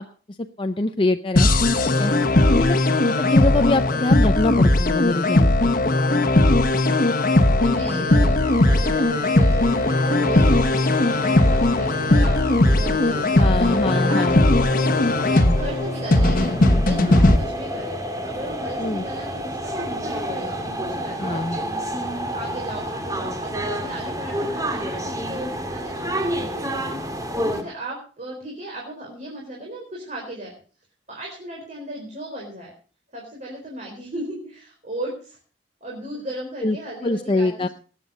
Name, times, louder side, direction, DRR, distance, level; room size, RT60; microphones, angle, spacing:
voice 1, 0.0-1.5 1.9-2.1 2.5-2.7 3.2-5.7 7.9-8.1 13.4-14.4 18.8-19.0 21.2-21.6 36.6-36.8 37.0-37.7, left 2 dB, 30° left, 7 dB, 0.6 m, -24 dB
sound 1, 1.4-17.4, left 2 dB, 50° left, 1.3 m, -18 dB
voice 2, 2.2-2.5 5.9-6.0 6.8-21.9 22.3-30.5 31.1-32.7 33.1-35.4 35.8-37.7, right 1 dB, 45° right, -2 dB, 4.1 m, -36 dB
sound 2, 8.4-27.6, equal, 20° right, 2.1 m, -31 dB
19.5 x 8.4 x 5.3 m, 0.40 s
head